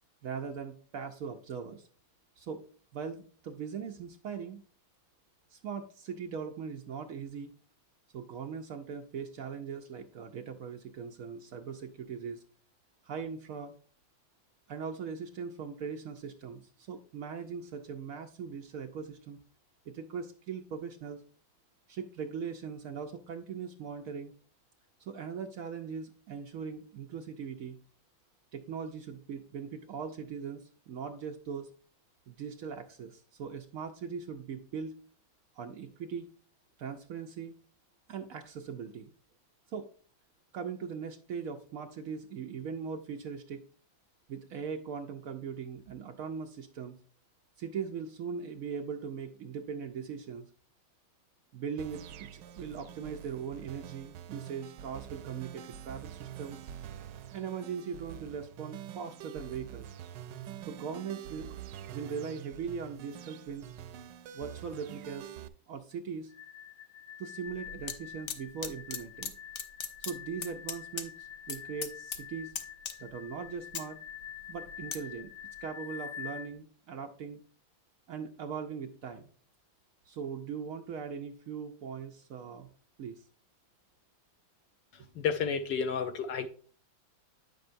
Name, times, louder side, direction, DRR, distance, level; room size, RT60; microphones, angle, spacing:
voice 1, 0.2-1.9 2.4-2.6 2.9-4.6 5.5-7.5 8.1-12.4 13.0-13.7 14.7-19.4 19.9-21.2 21.9-24.3 25.0-27.8 28.5-31.7 32.3-35.0 35.5-36.3 36.8-37.5 38.1-39.1 39.7-39.9 40.5-43.6 44.3-46.9 47.6-50.5 51.5-56.6 57.3-59.9 60.7-61.7 61.9-63.7 64.3-65.4 65.7-66.3 67.2-69.3 70.0-72.5 73.0-74.0 74.5-75.3 75.6-77.4 78.1-79.2 80.1-82.7 83.0-83.2, right 6 dB, 90° right, 0.7 m, -40 dB
sound 1, 51.8-65.5, right 10 dB, 75° right, 1.1 m, -46 dB
sound 2, 66.3-76.5, left 9 dB, 50° right, 0.3 m, -46 dB
sound 3, 67.5-67.9 68.3-69.3 69.6-71.1 71.3-71.6 71.8-72.2 72.5-73.2 73.6-75.0 75.5-75.6, left 7 dB, 85° left, 0.6 m, -38 dB
voice 2, 85.2-86.5, left 6 dB, 70° left, 1.2 m, -31 dB
9.2 x 6.5 x 2.6 m
omnidirectional pair, 2.2 m